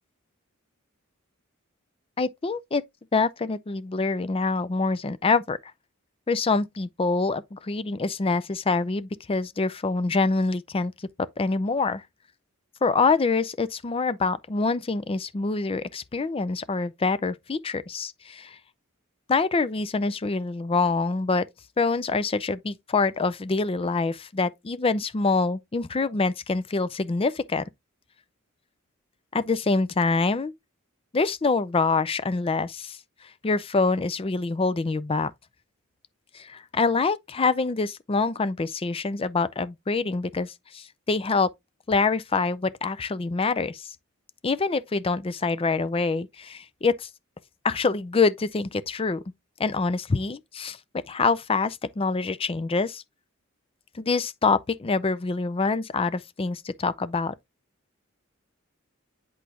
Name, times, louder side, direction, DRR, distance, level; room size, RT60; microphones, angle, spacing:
voice 1, 2.2-2.8 3.1-5.6 6.3-10.9 11.4-12.0 12.8-18.6 19.3-21.5 21.8-27.6 29.3-30.5 31.1-33.0 33.4-35.3 36.3-41.5 41.9-43.9 44.4-47.1 47.6-49.2 49.6-50.8 51.1-53.0 53.9-57.3, left 4 dB, 25° left, 0.5 m, -25 dB
8.2 x 4.6 x 2.8 m
head